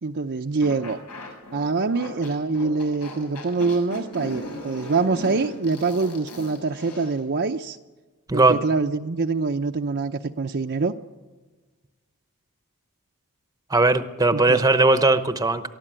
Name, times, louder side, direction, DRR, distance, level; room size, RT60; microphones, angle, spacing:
voice 1, 0.0-1.0 1.5-7.8 8.3-10.9 14.3-14.6, right 4 dB, 50° right, 4 dB, 0.7 m, -25 dB
sound 1, 0.6-7.2, left 1 dB, 90° left, 6.4 m, -38 dB
voice 2, 8.3-8.6 13.7-15.6, right 2 dB, 15° right, 10 dB, 0.9 m, -18 dB
23.0 x 13.5 x 8.9 m, 1.3 s
head